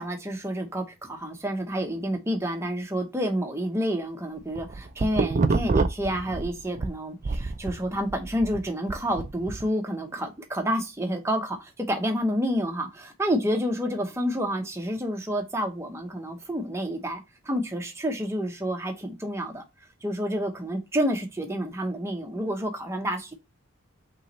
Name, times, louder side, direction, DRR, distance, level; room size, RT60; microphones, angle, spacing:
voice 1, 0.0-19.6 20.0-23.3, equal, 15° right, 0.8 m, -29 dB
sound 1, 4.4-6.9 7.2-9.6, right 3 dB, 35° right, 0.3 m, -27 dB
5.4 x 3.1 x 3.1 m
head